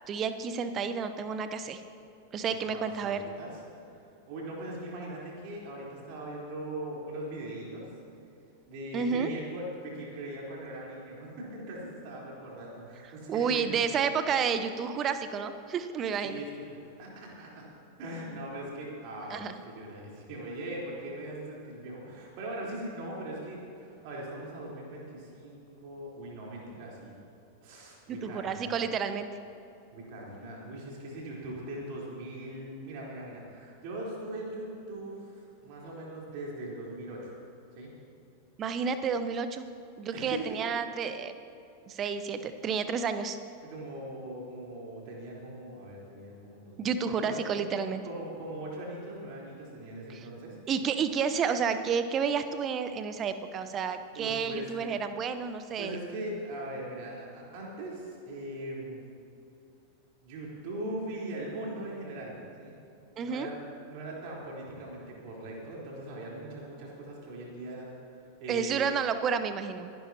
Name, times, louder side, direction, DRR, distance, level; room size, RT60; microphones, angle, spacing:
voice 1, 0.1-1.8 2.3-3.2 8.9-9.3 13.3-16.4 19.3-19.5 28.1-29.3 38.6-39.6 40.0-41.3 41.9-43.4 46.8-48.0 50.1-50.2 50.7-56.0 63.2-63.5 68.5-69.9, right 6 dB, 30° right, 10 dB, 0.9 m, -30 dB
voice 2, 2.7-3.6 4.2-7.8 8.7-13.8 16.2-17.6 18.0-27.1 27.6-28.7 29.9-37.3 37.7-37.9 40.1-40.6 42.3-42.4 43.6-47.4 48.0-50.6 54.1-54.8 55.7-59.0 60.2-62.7 63.2-63.5 63.9-67.9 68.4-68.9, right 1 dB, 45° right, -4 dB, 3.9 m, -40 dB
26.0 x 11.0 x 2.9 m, 2.8 s
figure-of-eight pair, 90°, 0 cm